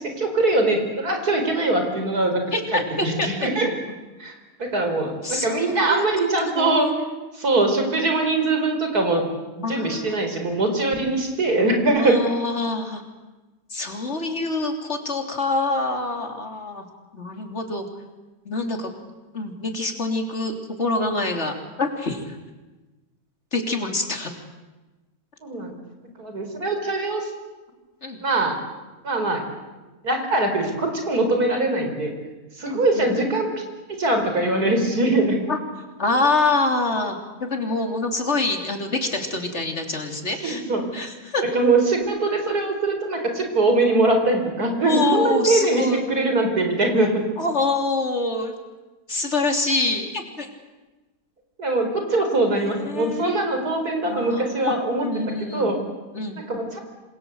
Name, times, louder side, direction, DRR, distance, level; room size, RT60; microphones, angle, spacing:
voice 1, 0.0-2.4 2.7-3.7 4.2-4.3 4.6-6.9 7.3-9.2 9.6-12.2 25.4-25.7 26.2-27.3 28.2-28.6 29.0-29.4 30.0-32.1 32.6-33.5 33.9-35.4 40.4-40.9 41.4-47.2 51.6-55.2 55.5-55.8 56.4-56.8, right 2 dB, 85° right, 4 dB, 5.0 m, -22 dB
voice 2, 2.5-2.8 3.2-3.3 5.2-6.1 6.4-6.9 9.6-10.2 12.0-13.0 13.7-16.8 17.1-17.8 18.5-18.9 19.3-22.4 23.5-24.3 28.0-28.2 32.6-33.1 35.5-35.6 36.0-37.2 37.5-40.6 40.9-41.5 44.8-46.0 47.4-48.5 49.1-50.5 52.7-53.4 54.0-54.7 55.0-55.7 56.1-56.4, left 3 dB, 45° left, 4 dB, 3.8 m, -25 dB
27.5 x 26.5 x 8.1 m, 1.2 s
omnidirectional pair, 1.6 m